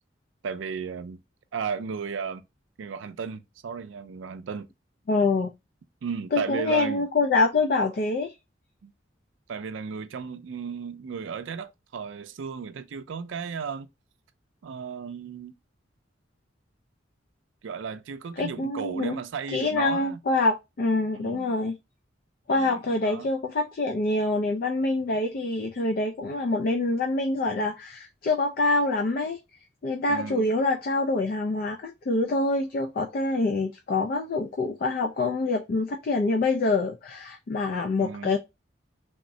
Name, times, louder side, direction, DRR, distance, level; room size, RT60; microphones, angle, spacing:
voice 1, 0.4-1.2 1.5-2.4 2.8-4.7 6.0-7.0 8.8-8.9 9.5-13.9 14.6-15.5 17.6-20.2 21.1-21.5 22.6-23.3 30.1-30.5 38.0-38.4, right 6 dB, 80° right, 0.4 m, -34 dB
voice 2, 5.1-5.5 6.3-8.3 18.4-19.2 19.5-21.8 22.5-29.4 29.8-38.4, left 2 dB, 50° left, 0.3 m, -25 dB
3.5 x 2.0 x 2.6 m
head